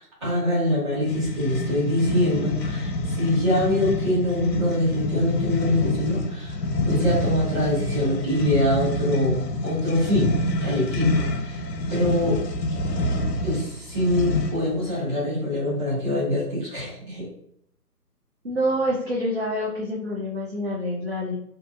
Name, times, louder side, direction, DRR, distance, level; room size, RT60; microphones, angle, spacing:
voice 1, 0.0-10.3 10.6-12.4 13.4-17.3, left 1 dB, 20° right, -12 dB, 1.3 m, -24 dB
sound 1, 1.0-14.7, left 1 dB, 85° left, 0.7 m, -27 dB
voice 2, 18.4-21.3, equal, 45° right, -4 dB, 0.5 m, -26 dB
2.8 x 2.6 x 2.3 m, 0.71 s
hypercardioid pair, 175°, 48 cm